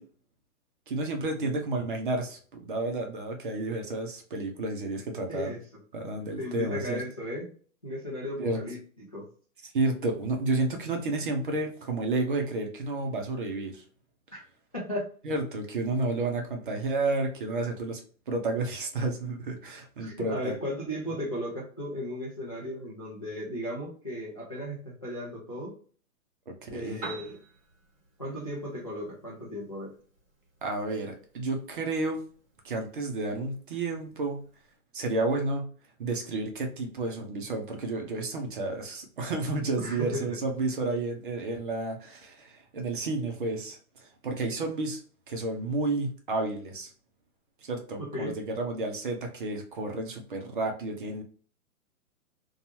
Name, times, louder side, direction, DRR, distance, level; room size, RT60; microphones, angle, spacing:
voice 1, 0.9-5.5 5.9-7.0 8.4-8.6 9.7-13.8 15.2-18.0 18.3-20.5 26.6-27.0 30.6-32.2 32.6-34.5 34.9-35.7 36.0-45.0 45.3-46.9 47.6-51.2, right 2 dB, 35° right, 3 dB, 0.5 m, -31 dB
voice 2, 5.3-5.6 6.4-7.5 7.8-9.3 14.3-14.4 14.7-15.0 20.0-25.7 26.7-27.4 28.2-29.9 39.8-40.4 48.0-48.3, left 1 dB, 30° left, -5 dB, 0.3 m, -35 dB
Piano, 26.8-34.8, right 4 dB, 15° right, 1.3 m, -50 dB
2.6 x 2.3 x 2.8 m, 0.43 s
hypercardioid pair, 150°, 44 cm